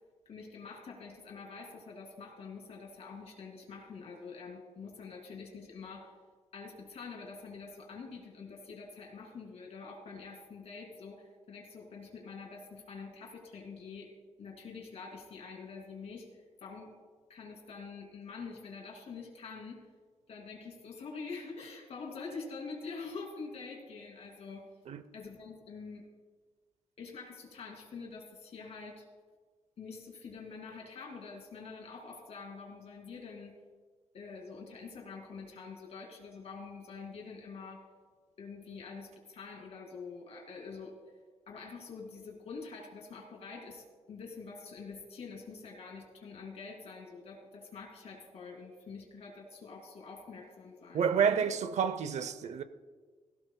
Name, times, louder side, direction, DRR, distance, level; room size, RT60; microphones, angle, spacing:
voice 1, 0.3-6.1 6.5-14.1 14.4-17.0 17.3-19.9 20.3-24.7 25.1-26.1 27.0-29.1 29.8-33.6 34.1-37.9 38.4-41.0 41.5-51.5, left 4 dB, 60° left, 2.5 m, -46 dB
voice 2, 50.9-52.6, right 7 dB, 70° right, 0.7 m, -29 dB
17.0 x 16.5 x 2.3 m
wide cardioid pair, 180°, 12 cm